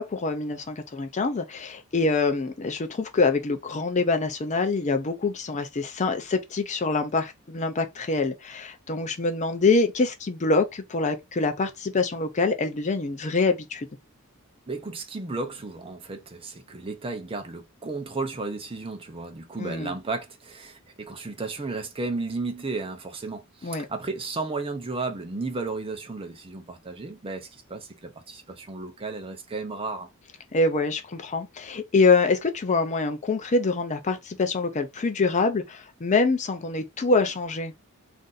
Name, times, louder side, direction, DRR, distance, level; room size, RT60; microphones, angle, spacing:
voice 1, 0.0-13.9 19.6-19.9 23.6-23.9 30.5-37.7, left 3 dB, 35° left, 0.5 m, -25 dB
voice 2, 14.7-30.1, right 3 dB, 25° right, 0.6 m, -34 dB
2.6 x 2.6 x 3.8 m
head